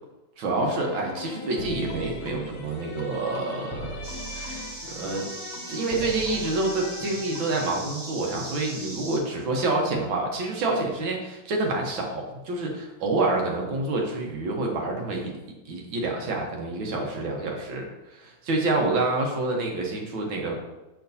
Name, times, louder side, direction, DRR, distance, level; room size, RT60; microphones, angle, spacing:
voice 1, 0.4-3.9 4.3-5.3 5.7-15.3 15.7-20.6, right 2 dB, 80° right, 0 dB, 1.8 m, -28 dB
sound 1, 0.5-7.7, left 1 dB, 70° left, 0.5 m, -38 dB
sound 2, 4.0-9.2, right 1 dB, 35° right, 0.7 m, -39 dB
6.4 x 5.8 x 2.7 m, 1.0 s
omnidirectional pair, 2.1 m